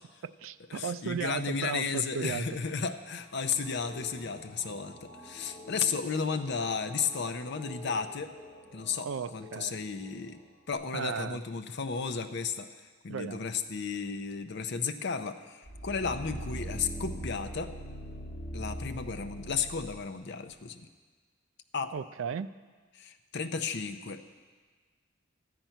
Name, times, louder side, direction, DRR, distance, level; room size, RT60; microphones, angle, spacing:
voice 1, 0.2-2.5 9.0-9.8 10.9-11.4 13.1-13.5 21.9-22.5, right 6 dB, 80° right, 14 dB, 0.4 m, -35 dB
voice 2, 0.7-8.3 8.7-10.4 10.7-12.7 13.0-17.7 18.5-20.9 21.7-21.9 22.9-24.2, left 5 dB, 60° left, 9 dB, 0.6 m, -33 dB
sound 1, 3.2-10.7, left 2 dB, 20° left, 3.2 m, -50 dB
sound 2, 15.7-20.0 20.5-20.6, right 1 dB, 45° left, 1.7 m, -40 dB
12.5 x 5.8 x 9.0 m, 1.4 s
head